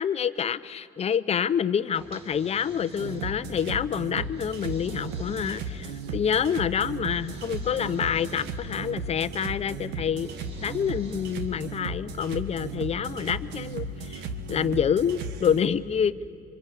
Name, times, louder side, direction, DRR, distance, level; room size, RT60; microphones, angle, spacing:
voice 1, 0.0-10.3 10.6-16.1, left 8 dB, 40° left, 14 dB, 0.7 m, -27 dB
sound 1, 1.9-3.6 4.2-6.2 7.1-8.9 10.1-11.7, right 2 dB, 35° right, 3.4 m, -47 dB
sound 2, 2.9-15.6, right 3 dB, 90° right, 1.7 m, -36 dB
25.5 x 25.0 x 8.4 m, 2.6 s
cardioid pair, 110°, 17 cm